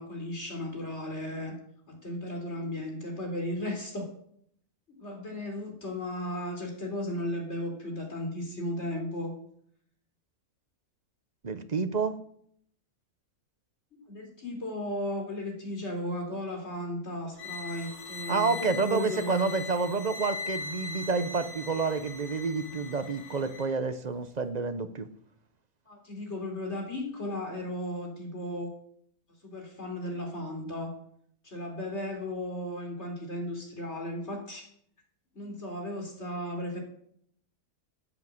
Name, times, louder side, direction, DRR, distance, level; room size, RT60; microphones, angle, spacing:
voice 1, 0.0-1.5 1.9-4.1 5.0-9.3 13.9-19.4 20.9-21.0 25.9-28.7 29.4-30.9 31.4-34.7 35.3-36.8, left 1 dB, 45° left, 3 dB, 3.8 m, -35 dB
voice 2, 11.4-12.2 18.3-25.1, right 4 dB, 35° right, 10 dB, 0.7 m, -29 dB
sound 1, 17.4-23.7, left 4 dB, 90° left, 3.0 m, -40 dB
13.5 x 8.4 x 7.7 m, 0.67 s
omnidirectional pair, 1.6 m